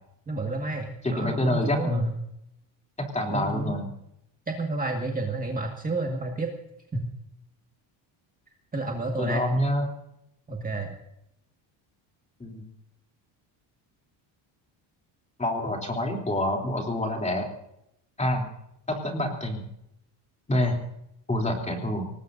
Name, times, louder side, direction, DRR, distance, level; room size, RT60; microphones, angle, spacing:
voice 1, 0.3-2.2 3.3-3.8 4.5-6.5 6.9-7.1 8.7-9.4 10.5-11.0, right 2 dB, 15° right, 1 dB, 1.9 m, -30 dB
voice 2, 1.0-2.0 3.0-3.9 9.2-9.8 12.4-12.6 15.4-17.5 18.2-18.5 18.9-19.6 20.5-20.8 21.3-22.1, left 1 dB, 15° left, 1 dB, 3.2 m, -27 dB
24.0 x 19.5 x 2.7 m, 0.79 s
cardioid pair, 140°, 49 cm